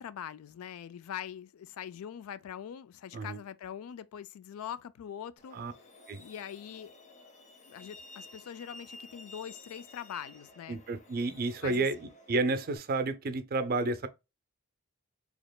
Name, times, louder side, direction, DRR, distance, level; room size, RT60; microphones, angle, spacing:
voice 1, 0.0-5.6 6.1-7.1 7.7-10.8 11.6-11.9, left 9 dB, 75° left, 0.3 m, -43 dB
Truck, 5.4-12.8, left 2 dB, 35° left, 0.8 m, -53 dB
voice 2, 10.7-14.1, right 3 dB, 45° right, 0.5 m, -31 dB
4.2 x 2.9 x 2.2 m
head